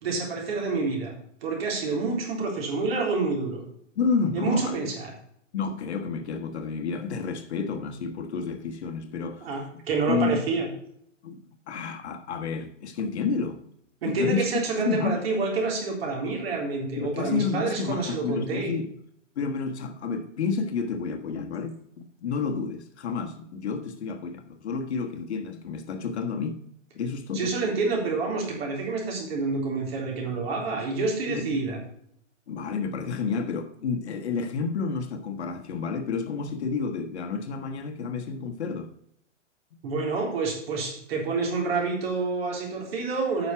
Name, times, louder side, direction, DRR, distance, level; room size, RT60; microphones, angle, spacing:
voice 1, 0.0-1.1 1.4-3.6 4.3-5.1 9.4-10.7 14.0-18.7 27.3-31.8 39.8-43.5, right 3 dB, 50° right, 3.8 m, -28 dB
voice 2, 3.9-4.9 5.5-9.8 10.1-10.4 11.2-13.6 14.0-15.2 16.9-18.9 19.3-26.6 26.9-27.5 31.3-31.4 32.5-38.9, left 5 dB, 60° left, 1.4 m, -30 dB
9.6 x 6.2 x 5.6 m
hypercardioid pair, 155°, 38 cm